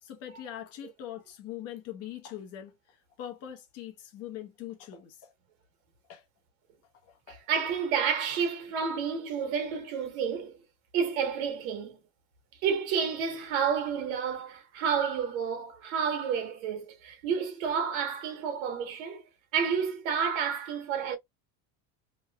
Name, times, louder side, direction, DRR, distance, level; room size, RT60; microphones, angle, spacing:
voice 1, 0.0-5.3 6.1-6.2 7.1-7.4, left 11 dB, 35° left, 0.9 m, -42 dB
voice 2, 7.3-10.6 10.9-12.0 12.6-19.2 19.5-21.2, right 7 dB, 85° right, 1.3 m, -30 dB
3.1 x 2.6 x 2.3 m
cardioid pair, 175°, 41 cm